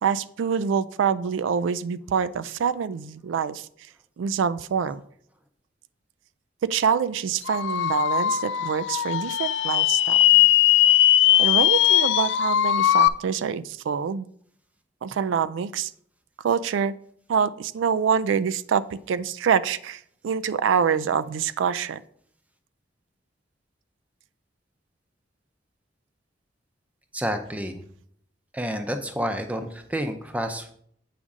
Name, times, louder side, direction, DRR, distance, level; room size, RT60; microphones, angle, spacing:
voice 1, 0.0-3.7 4.2-5.0 6.6-10.2 11.4-14.3 15.0-15.9 16.4-16.9 17.3-22.0, right 7 dB, 85° right, 15 dB, 0.3 m, -25 dB
sound 1, 7.5-13.1, left 12 dB, 75° left, 0.3 m, -19 dB
voice 2, 27.1-27.8 28.5-30.7, equal, 10° right, 7 dB, 0.5 m, -29 dB
8.5 x 5.1 x 3.7 m, 0.64 s
head